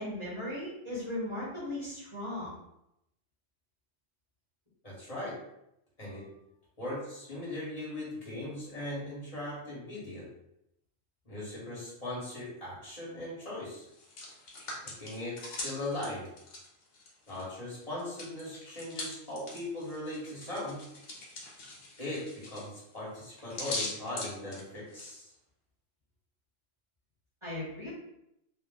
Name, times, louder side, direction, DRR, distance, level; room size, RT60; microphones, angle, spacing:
voice 1, 0.0-2.5 6.0-6.3 27.4-27.9, left 1 dB, 25° right, -9 dB, 1.3 m, -37 dB
voice 2, 4.8-5.4 6.0-6.3 6.8-10.3 11.3-13.9 14.8-16.3 17.3-20.9 22.0-25.3, left 1 dB, 30° left, -7 dB, 1.7 m, -39 dB
Hands, 13.8-17.5 17.8-25.1, left 2 dB, 70° left, 1.3 m, -42 dB
3.3 x 2.4 x 3.8 m, 0.81 s
omnidirectional pair, 1.3 m